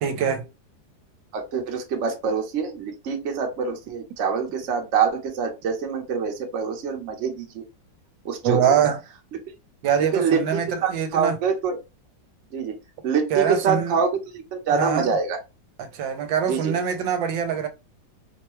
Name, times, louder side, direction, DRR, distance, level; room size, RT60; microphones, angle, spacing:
voice 1, 0.0-0.4 8.4-9.0 9.8-11.4 13.3-14.0 14.7-15.2 15.8-17.7, right 7 dB, 80° right, 1.3 m, -24 dB
voice 2, 1.3-7.7 8.2-8.6 10.0-11.8 12.5-12.7 13.0-15.4 16.5-16.8, right 6 dB, 50° right, 0.9 m, -25 dB
4.6 x 2.2 x 2.9 m
omnidirectional pair, 2.0 m